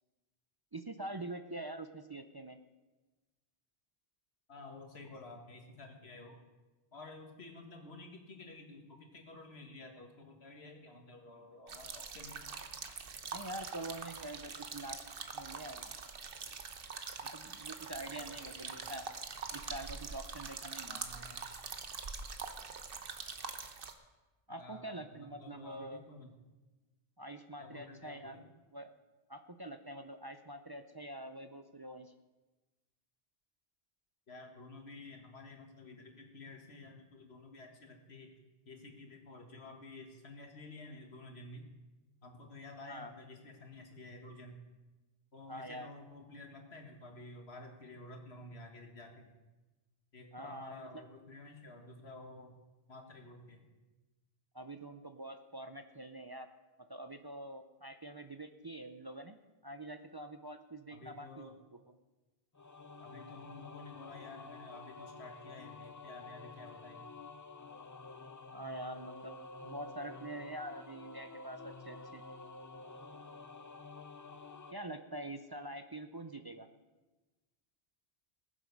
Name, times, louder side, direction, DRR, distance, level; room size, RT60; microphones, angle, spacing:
voice 1, 0.7-2.6 13.3-15.0 15.3-16.0 17.2-19.0 19.5-21.0 24.5-26.0 27.2-28.4 28.7-28.9 29.3-32.1 42.9-43.1 45.5-45.9 50.3-51.0 54.5-56.5 56.9-59.4 59.6-61.8 68.5-72.2 74.7-76.7, right 1 dB, 30° right, 7 dB, 0.4 m, -45 dB
voice 2, 4.5-6.4 6.9-12.4 18.2-18.8 20.9-21.4 24.6-26.3 27.6-28.4 34.3-38.3 38.7-41.7 42.2-44.6 45.3-49.3 50.1-52.5 52.9-53.6 60.9-61.5 63.0-67.1, left 2 dB, 90° left, 3 dB, 1.9 m, -51 dB
sound 1, 11.7-23.9, right 5 dB, 65° right, 1.1 m, -44 dB
sound 2, 62.5-74.7, left 3 dB, 25° left, 0.4 m, -50 dB
19.5 x 7.6 x 5.3 m, 1.2 s
omnidirectional pair, 1.0 m